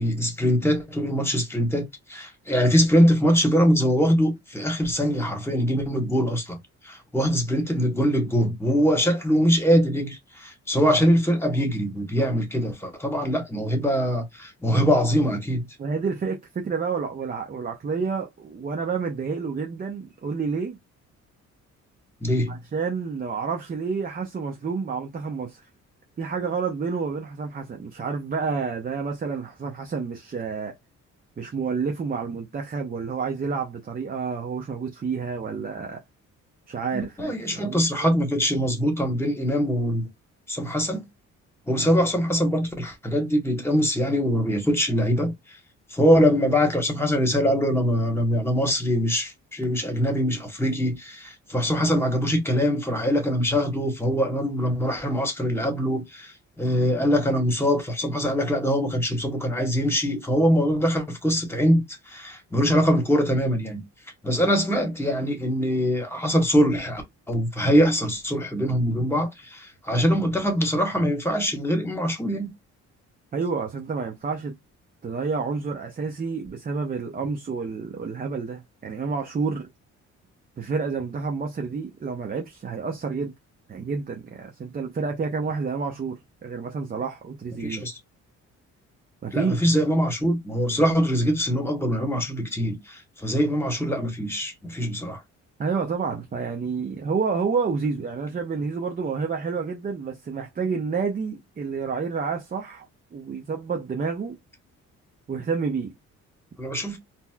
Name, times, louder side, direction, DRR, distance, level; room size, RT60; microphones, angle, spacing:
voice 1, 0.0-6.6 6.8-15.7 22.2-22.6 36.9-40.1 40.5-41.0 41.7-45.3 45.9-63.8 64.2-72.5 87.6-87.9 89.3-95.2 106.6-107.0, equal, 10° left, 1.2 m, -23 dB
voice 2, 15.8-20.8 22.5-25.6 26.2-30.8 31.4-36.0 36.7-38.1 73.3-74.6 75.0-79.7 80.6-83.3 83.7-87.8 89.2-89.6 95.6-102.8 103.1-104.4 105.3-105.9, right 5 dB, 30° right, 0.6 m, -29 dB
4.1 x 2.1 x 2.3 m
cardioid pair, 90°, 30 cm